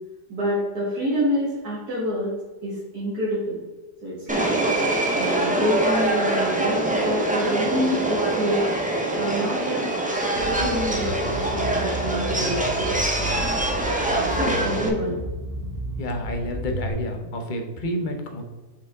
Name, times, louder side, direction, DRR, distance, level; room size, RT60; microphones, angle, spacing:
voice 1, 0.3-2.4 2.6-3.6 4.0-4.6 5.1-8.6 9.1-9.9 10.4-12.9 13.2-13.4 14.1-15.2, equal, 70° right, -9 dB, 2.4 m, -27 dB
Subway metro underground, 4.3-14.9, right 2 dB, 10° right, 0.4 m, -24 dB
sound 1, 10.3-16.9, right 1 dB, 90° right, 3.1 m, -32 dB
voice 2, 16.0-18.4, equal, 35° left, 3 dB, 0.9 m, -29 dB
6.2 x 5.1 x 3.6 m, 1.2 s
omnidirectional pair, 1.7 m